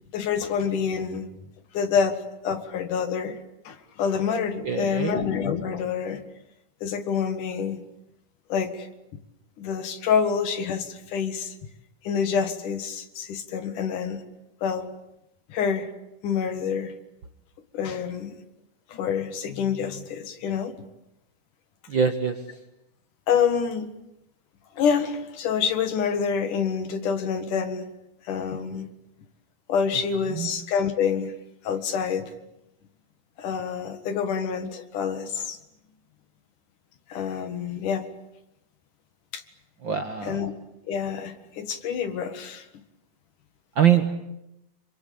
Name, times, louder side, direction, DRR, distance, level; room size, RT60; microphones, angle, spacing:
voice 1, 0.1-1.3 1.7-3.4 3.6-6.2 6.8-7.8 8.5-8.9 9.6-11.5 12.0-14.2 14.6-14.9 15.5-15.9 16.2-16.9 17.7-18.3 18.9-20.7 23.3-23.9 24.7-27.9 28.2-28.9 29.7-31.3 31.6-32.3 33.4-35.6 37.1-38.1 39.3-39.4 40.2-40.5 40.9-42.7, left 6 dB, 65° left, 9 dB, 3.1 m, -27 dB
voice 2, 4.6-5.1 21.9-22.4 30.3-30.5 39.8-40.4 43.8-44.2, right 8 dB, 65° right, 7 dB, 1.2 m, -23 dB
26.5 x 25.0 x 8.6 m, 0.87 s
omnidirectional pair, 4.1 m